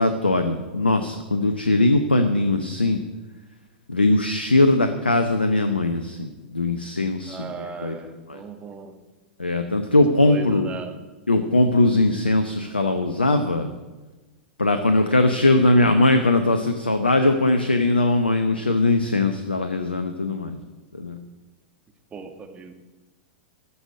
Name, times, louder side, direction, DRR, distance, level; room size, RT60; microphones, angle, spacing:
voice 1, 0.0-3.0 3.9-8.0 8.3-8.4 9.4-10.7 11.3-13.7 14.6-20.6 20.9-21.2, left 2 dB, 85° left, 8 dB, 0.8 m, -20 dB
voice 2, 7.3-9.0 9.8-10.0 10.2-11.0 22.1-22.8, right 4 dB, 20° right, 6 dB, 1.4 m, -37 dB
14.0 x 5.7 x 9.6 m, 1.2 s
figure-of-eight pair, 95°, 5 cm